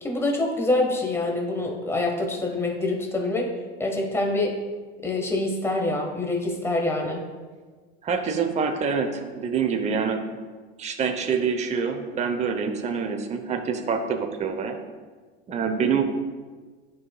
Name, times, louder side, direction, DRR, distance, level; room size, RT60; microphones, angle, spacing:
voice 1, 0.0-3.5 3.8-4.6 5.0-7.2, left 2 dB, 10° left, 0 dB, 1.3 m, -25 dB
voice 2, 8.0-10.3 10.8-14.8 15.5-16.0, right 6 dB, 20° right, 5 dB, 0.7 m, -26 dB
11.0 x 4.9 x 2.2 m, 1.4 s
hypercardioid pair, 95°, 32 cm